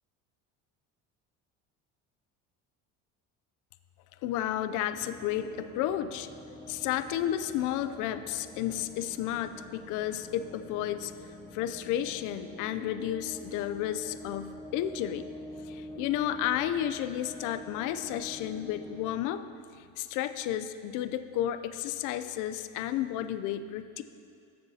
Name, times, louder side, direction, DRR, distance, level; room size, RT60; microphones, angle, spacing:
voice 1, 4.2-6.3 6.7-11.1 11.5-15.3 15.6-19.4 19.8-24.0, left 11 dB, 65° left, 11 dB, 0.5 m, -32 dB
sound 1, 4.9-19.2, left 1 dB, 15° left, 0.6 m, -46 dB
15.0 x 6.9 x 2.8 m, 2.3 s
cardioid pair, 115°, 32 cm